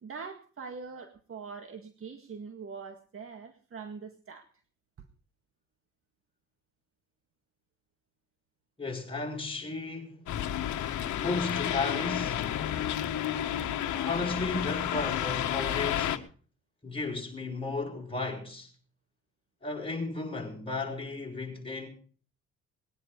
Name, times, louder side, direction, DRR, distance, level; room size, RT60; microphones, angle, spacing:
voice 1, 0.0-4.5 5.0-5.1, right 5 dB, 45° right, 1.9 m, -43 dB
voice 2, 8.8-10.3 10.9-12.5 13.9-16.2 16.8-18.7 19.6-21.9, left 3 dB, 15° left, 6.5 m, -34 dB
sound 1, 10.3-16.2, left 11 dB, 75° left, 1.6 m, -31 dB
20.5 x 10.0 x 5.2 m
cardioid pair, 90°, 30 cm